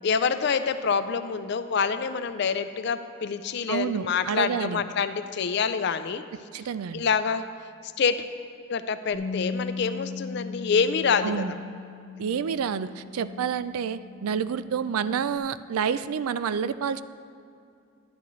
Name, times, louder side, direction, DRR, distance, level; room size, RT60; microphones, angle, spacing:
voice 1, 0.0-6.2 6.9-7.4 8.0-8.2 8.7-11.5, left 6 dB, 50° left, 11 dB, 0.4 m, -26 dB
voice 2, 3.7-4.8 6.5-7.1 11.2-11.5 12.2-17.0, right 7 dB, 90° right, 14 dB, 0.3 m, -29 dB
Bass guitar, 9.1-15.4, left 4 dB, 75° left, 0.8 m, -38 dB
11.0 x 10.0 x 3.1 m, 2.4 s
head